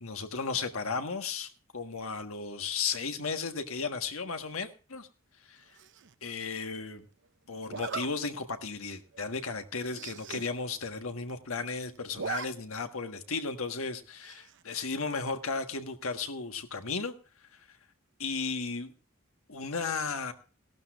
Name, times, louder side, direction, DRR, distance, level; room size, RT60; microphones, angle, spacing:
voice 1, 0.0-5.1 5.4-5.6 6.2-7.0 7.5-17.1 17.5-17.6 18.2-18.9 19.5-20.3, left 4 dB, 75° left, 7 dB, 1.4 m, -35 dB
Zipper (clothing), 5.8-6.1 7.7-8.1 8.6-8.8 9.1-9.2 9.5-9.6 9.8-10.5 10.8-10.9 11.1-11.6 12.0-12.5 12.8-12.9 14.2-14.6, right 6 dB, 60° right, 0.7 m, -39 dB
17.0 x 12.5 x 2.4 m, 0.36 s
head